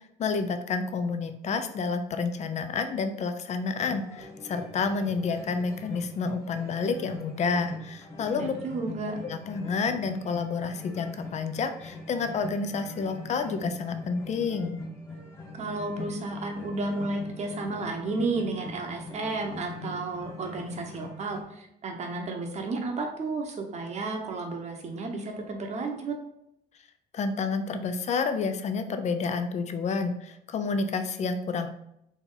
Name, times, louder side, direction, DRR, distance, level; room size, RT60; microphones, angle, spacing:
voice 1, 0.2-8.5 9.2-14.8 27.1-31.7, left 4 dB, 40° left, 8 dB, 0.5 m, -29 dB
sound 1, 3.8-21.4, left 2 dB, 15° left, 1.0 m, -42 dB
voice 2, 8.3-9.2 15.5-26.2, right 3 dB, 40° right, 3 dB, 0.9 m, -32 dB
4.2 x 2.9 x 3.9 m, 0.79 s
cardioid pair, 110°, 17 cm